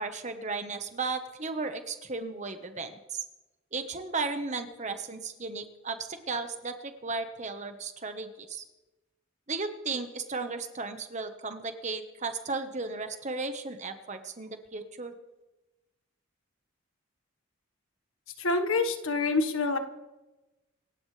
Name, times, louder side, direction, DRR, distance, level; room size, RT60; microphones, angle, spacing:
voice 1, 0.0-3.2 3.7-8.6 9.5-15.1, right 3 dB, 35° right, 7 dB, 1.3 m, -35 dB
voice 2, 18.4-19.8, left 3 dB, 80° left, 7 dB, 1.7 m, -26 dB
27.0 x 14.5 x 3.4 m, 1.1 s
head